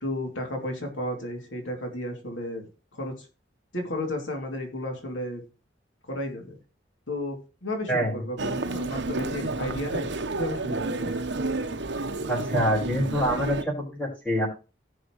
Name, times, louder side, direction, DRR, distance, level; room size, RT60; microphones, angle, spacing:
voice 1, 0.0-2.6 2.9-3.3 3.7-5.4 6.0-6.6 7.1-11.1, left 1 dB, 85° left, 2 dB, 2.9 m, -33 dB
voice 2, 7.9-8.2 12.3-14.5, equal, 10° left, -2 dB, 5.0 m, -26 dB
Human voice, 8.4-13.6, right 2 dB, 70° right, 1.0 m, -30 dB
17.0 x 6.4 x 3.1 m, 0.31 s
head